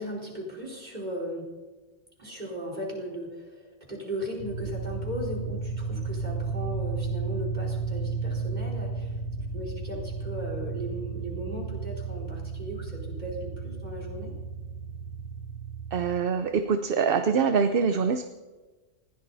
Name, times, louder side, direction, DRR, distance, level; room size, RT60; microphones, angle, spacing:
voice 1, 0.0-1.5 2.2-9.1 9.5-14.3, equal, 35° right, -2 dB, 4.6 m, -37 dB
sound 1, 4.4-16.1, right 4 dB, 50° left, 3.1 m, -33 dB
voice 2, 15.9-18.2, right 6 dB, 55° right, 9 dB, 0.9 m, -24 dB
20.5 x 16.5 x 4.1 m, 1.3 s
omnidirectional pair, 1.2 m